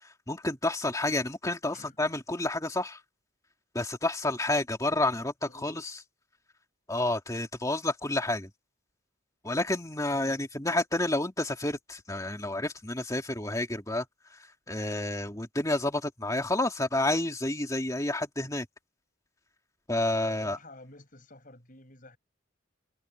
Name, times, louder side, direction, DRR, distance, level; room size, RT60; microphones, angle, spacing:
voice 1, 0.3-3.0 3.7-5.9 6.9-8.5 9.4-14.1 14.7-18.7 19.9-20.6, left 2 dB, 15° left, 2.3 m, -29 dB
voice 2, 5.5-5.8 10.1-10.4 20.2-22.2, left 2 dB, 40° left, 7.4 m, -51 dB
head